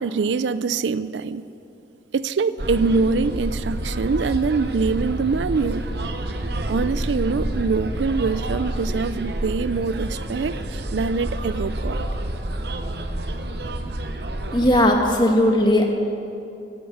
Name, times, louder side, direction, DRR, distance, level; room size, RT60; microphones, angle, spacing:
voice 1, 0.0-1.4 2.1-5.9 6.7-12.0, right 4 dB, 80° right, 15 dB, 0.4 m, -24 dB
sound 1, 2.6-14.8, right 1 dB, 65° right, 0.9 m, -28 dB
voice 2, 14.5-16.0, left 1 dB, 25° left, 2 dB, 1.5 m, -18 dB
12.5 x 12.0 x 8.0 m, 2.7 s
head